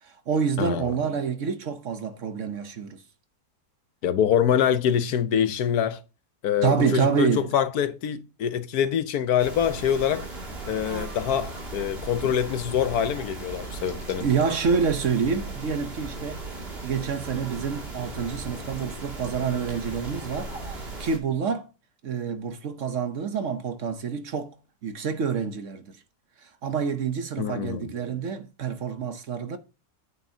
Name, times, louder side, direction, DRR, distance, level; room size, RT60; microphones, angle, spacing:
voice 1, 0.0-3.0 6.6-7.5 14.2-16.5 16.8-21.7 22.0-24.6 24.8-26.0 26.4-29.6, right 6 dB, 55° right, 1.1 m, -27 dB
voice 2, 0.6-0.9 4.0-6.0 6.4-10.3 10.7-14.2 27.4-27.9, left 9 dB, 75° left, 1.3 m, -25 dB
sound 1, 9.4-21.2, right 2 dB, 35° right, 2.7 m, -37 dB
9.8 x 8.9 x 2.8 m
omnidirectional pair, 1.7 m